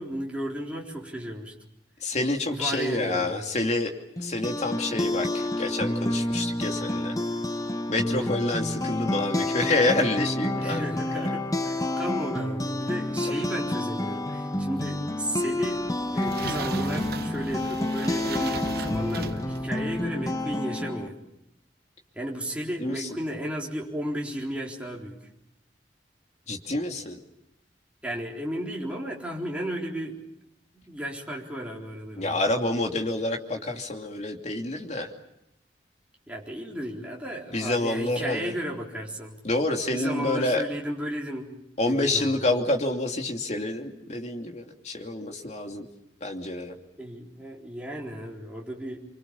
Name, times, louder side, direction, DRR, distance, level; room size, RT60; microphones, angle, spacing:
voice 1, 0.0-1.5 2.5-3.5 8.2-8.3 10.5-15.8 16.1-21.2 22.1-25.3 28.0-30.2 30.7-32.4 36.3-39.4 39.9-41.5 41.9-42.5 47.0-49.1, equal, 5° right, -3 dB, 4.2 m, -34 dB
voice 2, 2.0-3.9 4.2-7.2 7.9-10.9 11.1-11.3 22.8-23.1 26.5-27.2 32.2-35.1 37.5-38.5 39.4-40.6 41.8-45.9 46.2-46.7, left 2 dB, 40° left, 3 dB, 2.8 m, -28 dB
sound 1, 4.2-21.1, left 1 dB, 20° left, 1.1 m, -29 dB
sound 2, 15.7-20.6, right 4 dB, 60° right, 1.0 m, -38 dB
26.5 x 25.0 x 7.1 m, 0.82 s
head